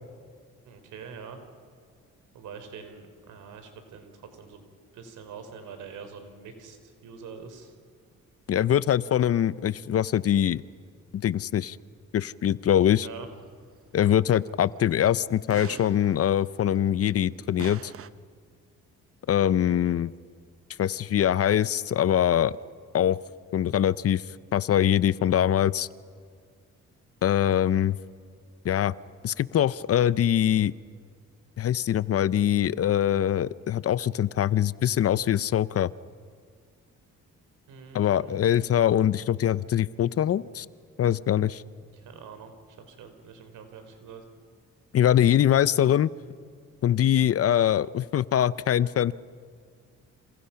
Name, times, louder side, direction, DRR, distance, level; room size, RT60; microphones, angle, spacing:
voice 1, 0.6-1.4 2.3-4.6 4.9-7.7 13.0-13.3 37.7-38.7 41.8-42.5 42.8-44.2, right 6 dB, 80° right, 7 dB, 4.1 m, -45 dB
voice 2, 8.5-10.6 11.1-11.8 12.1-13.1 13.9-17.9 19.3-20.1 20.8-22.5 22.9-23.2 23.5-24.2 24.5-25.9 27.2-28.0 28.6-28.9 29.2-30.7 31.6-35.9 37.9-40.7 41.0-41.6 44.9-46.1 46.8-49.1, left 10 dB, 50° left, 18 dB, 0.7 m, -23 dB
sound 1, 12.7-14.4 14.8-14.9 15.5-17.3 17.6-18.1, right 8 dB, 50° right, 0.9 m, -44 dB
29.5 x 28.0 x 5.8 m, 2.1 s
cardioid pair, 90°, 30 cm